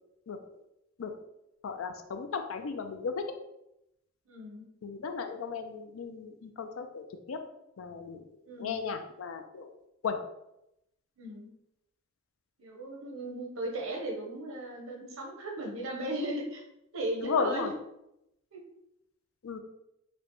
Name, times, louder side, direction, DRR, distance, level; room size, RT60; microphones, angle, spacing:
voice 1, 1.6-3.3 4.8-7.4 7.8-8.2 8.6-9.7 10.0-10.2 17.2-17.7 19.4-19.6, left 5 dB, 85° left, 7 dB, 0.4 m, -35 dB
voice 2, 4.3-4.7 8.5-8.8 11.2-11.5 12.6-16.6 16.9-17.7 18.5-18.6, right 1 dB, 90° right, 1 dB, 0.9 m, -36 dB
4.9 x 2.2 x 3.0 m, 0.85 s
head